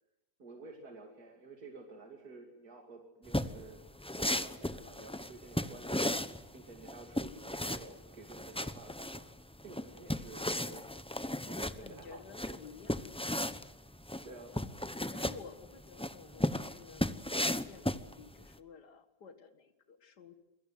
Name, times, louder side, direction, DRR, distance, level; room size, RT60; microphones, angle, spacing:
voice 1, 0.4-3.8 4.1-6.1 6.5-9.3 9.6-10.8 11.4-12.2 12.5-12.6 14.2-14.5, right 3 dB, 65° right, 2 dB, 3.1 m, -51 dB
sound 1, 3.3-18.5, left 1 dB, 5° left, 0.5 m, -36 dB
voice 2, 11.8-13.4 14.5-14.8 15.1-20.3, left 5 dB, 85° left, 8 dB, 2.3 m, -53 dB
27.5 x 22.5 x 7.9 m, 0.90 s
omnidirectional pair, 1.7 m